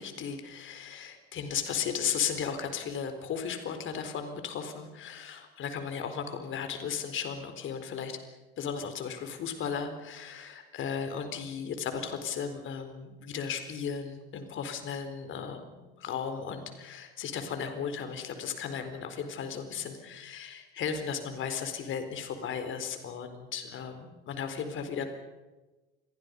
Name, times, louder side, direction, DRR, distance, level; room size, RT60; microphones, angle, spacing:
voice 1, 0.0-8.2 8.6-25.1, left 7 dB, 40° left, 8 dB, 4.4 m, -35 dB
30.0 x 22.5 x 5.5 m, 1.2 s
hypercardioid pair, 85°, 31 cm